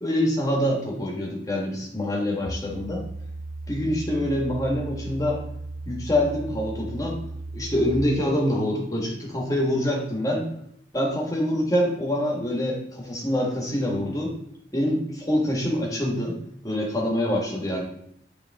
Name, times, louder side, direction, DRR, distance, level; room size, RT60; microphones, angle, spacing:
voice 1, 0.0-3.0 3.7-5.4 5.9-7.2 7.5-10.5 10.9-14.3 14.7-16.4 16.6-17.8, left 1 dB, 20° left, -2 dB, 1.4 m, -25 dB
sound 1, 2.4-7.9, right 2 dB, 15° right, 0.8 m, -36 dB
8.8 x 3.4 x 3.5 m, 0.71 s
head